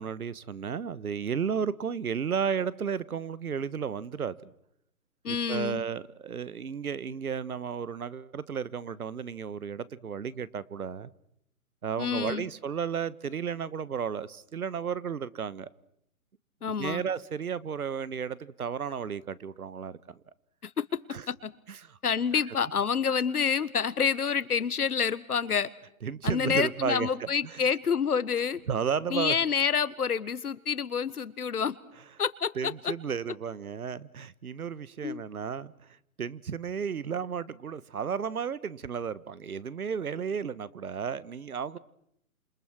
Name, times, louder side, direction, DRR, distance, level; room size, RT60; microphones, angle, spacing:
voice 1, 0.0-4.5 5.3-11.1 11.8-15.7 16.6-20.2 21.1-21.2 21.7-22.0 22.3-22.6 26.0-27.6 28.7-29.4 32.5-41.8, right 7 dB, 75° right, 1.4 m, -33 dB
voice 2, 5.2-5.8 12.0-12.4 16.6-17.0 20.6-20.8 21.3-21.4 22.0-25.7 26.2-28.6 29.1-31.7 32.2-32.9 35.0-35.2, left 6 dB, 80° left, 1.6 m, -28 dB
30.0 x 27.5 x 6.2 m
hypercardioid pair, 150°, 44 cm